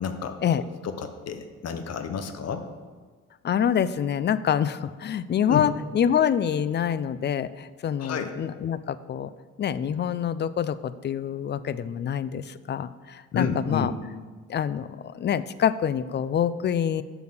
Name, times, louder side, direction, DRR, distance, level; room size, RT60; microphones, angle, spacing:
voice 1, 0.0-2.7 5.5-5.6 8.0-8.3 13.3-13.9, left 6 dB, 55° left, 8 dB, 0.9 m, -30 dB
voice 2, 3.4-9.3 9.6-13.9 14.5-17.0, left 8 dB, 35° left, 16 dB, 0.4 m, -26 dB
7.4 x 6.0 x 6.0 m, 1.5 s
cardioid pair, 90°, 30 cm